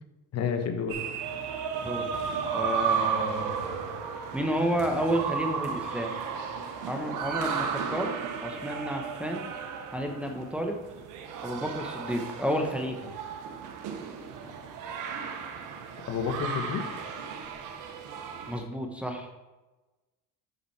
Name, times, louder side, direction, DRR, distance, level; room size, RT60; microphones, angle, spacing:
voice 1, 0.3-1.0 16.1-16.9, left 6 dB, 45° left, 6 dB, 1.2 m, -30 dB
sound 1, 0.9-18.6, right 6 dB, 65° right, 1.2 m, -34 dB
voice 2, 2.5-3.5 4.3-6.1 6.9-8.1 8.4-9.5 9.9-10.8 11.4-13.1 18.5-19.3, equal, 5° right, 2 dB, 1.0 m, -31 dB
8.0 x 6.0 x 4.2 m, 1.1 s
cardioid pair, 110°, 34 cm